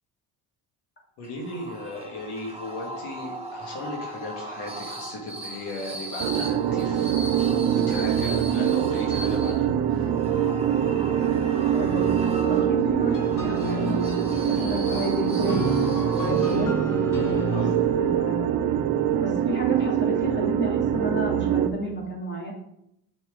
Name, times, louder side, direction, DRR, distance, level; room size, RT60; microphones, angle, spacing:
voice 1, 1.2-7.1 7.7-10.1 14.9-15.1 17.5-17.7, left 2 dB, 80° left, 0 dB, 1.9 m, -36 dB
sound 1, 1.2-17.0, right 1 dB, 15° right, 1.7 m, -38 dB
sound 2, 6.2-21.7, right 9 dB, 80° right, 0.7 m, -24 dB
voice 2, 11.7-16.7 17.6-17.7 17.9-18.5 19.2-22.5, equal, 25° left, -1 dB, 2.5 m, -32 dB
sound 3, 13.1-18.5, equal, 50° left, 2.4 m, -31 dB
6.7 x 6.2 x 3.7 m, 0.78 s
cardioid pair, 95°, 39 cm